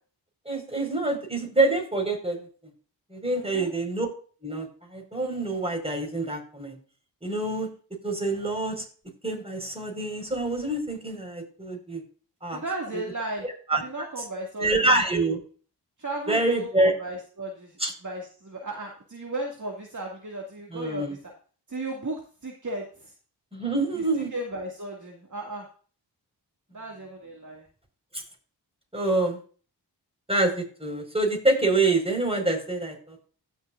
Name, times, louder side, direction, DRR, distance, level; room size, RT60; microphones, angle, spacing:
voice 1, 0.5-2.5 3.1-4.1 4.4-6.8 7.2-7.7 8.0-8.8 9.2-12.0 12.4-12.6 13.7-13.8 14.6-15.4 16.3-16.9 17.8-17.9 20.7-21.1 23.5-24.3 28.1-28.2 28.9-29.4 30.3-33.2, right 2 dB, 15° right, 2 dB, 5.1 m, -26 dB
voice 2, 3.3-3.7 12.5-13.5 13.8-14.9 16.0-21.3 21.7-23.1 23.9-25.7 26.7-27.7, right 2 dB, 45° right, -1 dB, 2.3 m, -35 dB
16.5 x 6.2 x 2.6 m, 0.39 s
cardioid pair, 45°, 42 cm